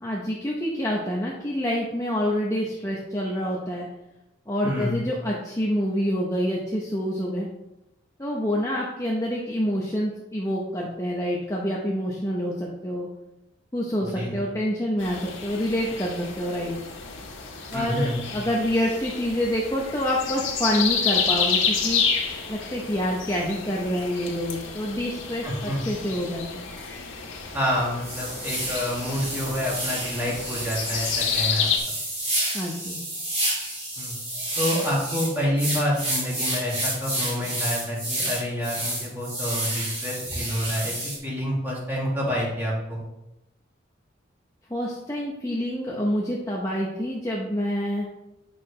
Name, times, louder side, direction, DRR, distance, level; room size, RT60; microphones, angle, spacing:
voice 1, 0.0-3.9 4.5-7.5 8.2-13.1 13.7-16.7 17.7-22.0 22.5-26.7 32.5-33.0 44.7-48.1, equal, 15° left, -4 dB, 0.8 m, -27 dB
voice 2, 4.6-5.0 14.0-14.3 17.7-18.2 25.4-25.8 27.5-31.7 34.0-34.2 34.6-43.0, equal, 10° right, -5 dB, 2.2 m, -28 dB
sound 1, 15.0-31.8, left 6 dB, 80° left, 1.4 m, -30 dB
sound 2, 28.0-41.2, right 1 dB, 30° right, 2.6 m, -30 dB
8.7 x 6.1 x 3.3 m, 0.94 s
head